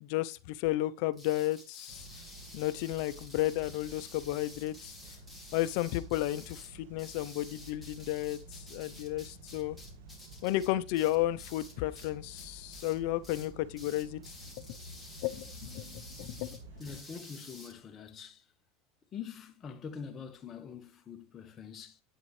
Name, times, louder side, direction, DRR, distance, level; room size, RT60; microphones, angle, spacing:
voice 1, 0.0-2.1 2.5-4.9 5.5-9.8 10.4-14.2 15.2-16.6, left 15 dB, 65° left, 0.6 m, -33 dB
sound 1, 1.1-12.1 12.4-13.0 13.2-13.5 13.8-17.7, left 2 dB, ahead, 2.7 m, -51 dB
sound 2, 1.9-17.0, right 2 dB, 85° right, 1.8 m, -51 dB
voice 2, 16.8-18.5 19.1-22.0, left 6 dB, 25° left, 1.4 m, -44 dB
9.2 x 8.6 x 3.2 m
supercardioid pair, 140°, 0 cm